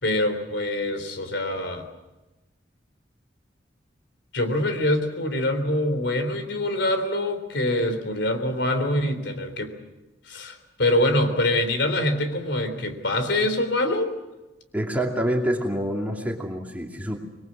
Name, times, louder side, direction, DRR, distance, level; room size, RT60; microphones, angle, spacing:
voice 1, 0.0-1.9 4.3-9.7 10.3-14.2, left 1 dB, 70° left, 8 dB, 3.5 m, -24 dB
voice 2, 14.7-17.2, right 1 dB, 10° right, 0 dB, 2.6 m, -27 dB
26.0 x 21.5 x 7.4 m, 1.0 s
head